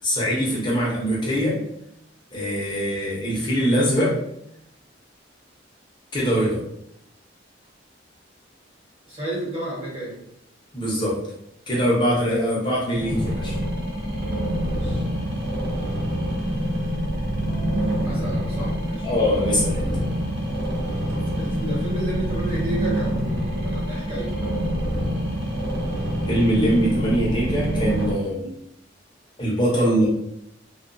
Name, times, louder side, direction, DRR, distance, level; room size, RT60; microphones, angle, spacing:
voice 1, 0.0-1.6 2.3-4.2 6.1-6.6 10.7-11.2 11.7-13.6 19.0-20.0 26.3-28.5 29.4-30.1, equal, 25° left, -5 dB, 0.8 m, -22 dB
voice 2, 9.0-10.2 14.6-15.1 18.0-19.1 21.1-24.4 29.7-30.0, right 1 dB, 30° right, -8 dB, 1.2 m, -32 dB
sound 1, 12.9-28.1, equal, 60° right, 0.7 m, -26 dB
Bass guitar, 17.5-23.7, equal, 45° left, 0.3 m, -38 dB
2.4 x 2.3 x 2.5 m, 0.77 s
head